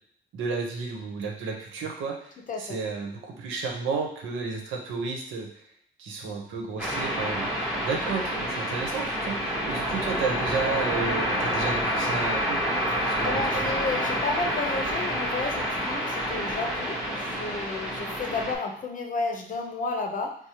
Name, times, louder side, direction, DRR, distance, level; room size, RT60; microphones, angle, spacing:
voice 1, 0.3-2.3 2.6-5.5 6.0-12.6 13.1-13.7, right 4 dB, 80° right, 1 dB, 0.8 m, -32 dB
sound 1, 6.8-18.5, equal, 5° right, 0.9 m, -28 dB
voice 2, 12.9-20.4, left 3 dB, 45° left, 3 dB, 0.7 m, -32 dB
4.7 x 2.0 x 2.9 m, 0.67 s
cardioid pair, 90°, 20 cm